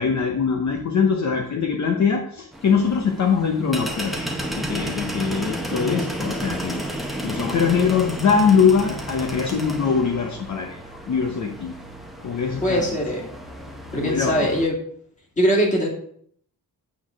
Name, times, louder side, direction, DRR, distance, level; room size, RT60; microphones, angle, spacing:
voice 1, 0.0-10.8 11.1-11.7 12.2-12.9 13.9-14.5, left 6 dB, 55° left, 3 dB, 0.9 m, -22 dB
sound 1, 2.5-14.7, equal, ahead, 0.8 m, -32 dB
voice 2, 12.6-13.3 13.9-14.7 15.4-15.9, equal, 20° left, -2 dB, 2.1 m, -21 dB
8.5 x 3.9 x 6.2 m, 0.63 s
wide cardioid pair, 165°, 34 cm